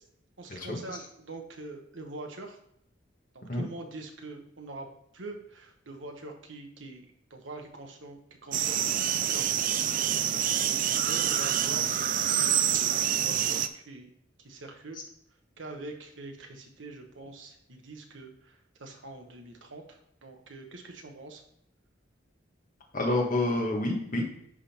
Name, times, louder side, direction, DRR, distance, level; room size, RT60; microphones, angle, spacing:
voice 1, 0.4-2.6 3.3-4.9 5.1-8.8 9.1-9.8 10.6-12.0 12.3-14.1 14.4-15.0 15.6-21.4, right 2 dB, 85° right, 3 dB, 1.3 m, -44 dB
sound 1, 8.5-13.7, right 9 dB, 45° right, 0.4 m, -27 dB
voice 2, 22.9-24.2, left 1 dB, 45° left, 0 dB, 1.7 m, -28 dB
11.0 x 3.8 x 4.4 m, 0.73 s
head